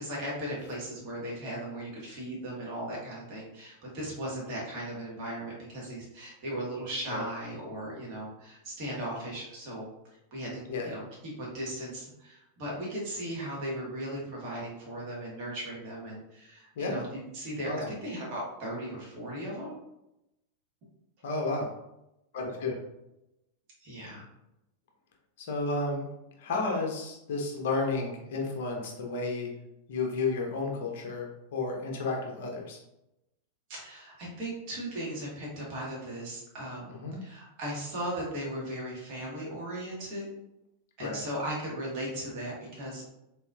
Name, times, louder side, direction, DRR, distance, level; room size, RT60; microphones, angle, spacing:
voice 1, 0.0-9.9 10.3-10.5 10.8-19.8 23.8-24.2 33.7-40.3 41.0-43.1, right 1 dB, 40° right, -4 dB, 1.5 m, -37 dB
voice 2, 21.2-21.7 22.3-22.7 25.4-26.1 26.4-29.5 29.9-32.8 36.9-37.2 41.0-41.2, left 3 dB, 55° left, 0 dB, 0.7 m, -32 dB
4.0 x 2.8 x 2.3 m, 0.89 s
figure-of-eight pair, 90°, 0 cm